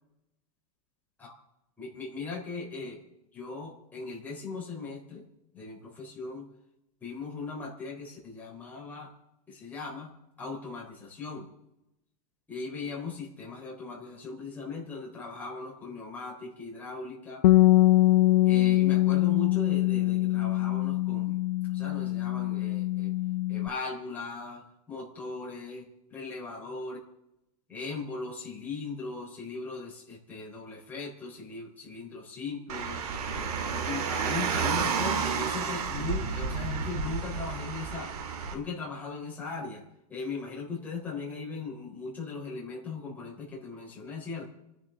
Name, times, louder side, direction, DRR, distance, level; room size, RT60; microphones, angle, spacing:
voice 1, 1.8-3.0 3.3-5.2 5.5-6.5 7.0-9.1 9.5-10.1 10.4-11.5 12.5-17.4 18.5-21.4 21.7-23.1 23.5-27.0 27.7-33.0 33.3-38.1 38.5-39.8 40.1-44.5, left 4 dB, 10° left, -4 dB, 3.8 m, -38 dB
Bass guitar, 17.4-23.7, left 17 dB, 85° left, 0.6 m, -23 dB
Car, 32.7-38.5, right 6 dB, 80° right, 2.5 m, -31 dB
28.5 x 10.5 x 3.8 m, 0.88 s
supercardioid pair, 170°, 19 cm